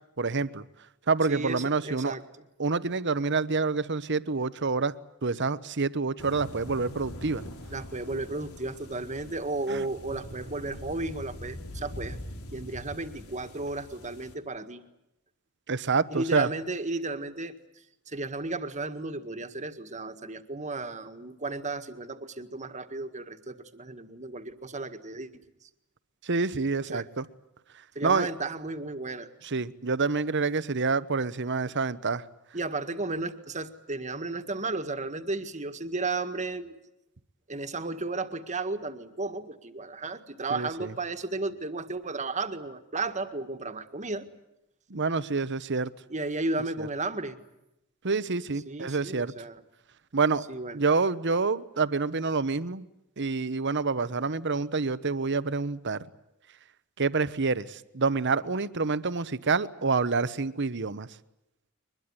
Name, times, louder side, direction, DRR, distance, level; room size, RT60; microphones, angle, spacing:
voice 1, 0.2-0.6 1.1-2.1 2.6-4.9 5.2-7.4 9.7-9.8 15.7-16.5 26.3-27.2 28.0-28.3 29.5-32.2 40.5-40.9 44.9-45.9 48.0-49.3 50.1-50.4 50.7-52.8 53.2-56.0 57.0-57.6 57.9-61.1, right 4 dB, 55° right, 15 dB, 1.0 m, -27 dB
voice 2, 1.3-2.5 7.7-12.2 12.5-14.8 16.1-17.6 18.1-25.3 26.8-27.1 28.0-29.3 32.5-36.8 37.5-44.3 46.1-47.4 48.7-49.7 50.5-50.8, right 3 dB, 35° right, 9 dB, 1.8 m, -34 dB
sound 1, 6.2-14.3, left 1 dB, 90° left, 3.7 m, -43 dB
23.0 x 21.5 x 9.7 m, 0.86 s
head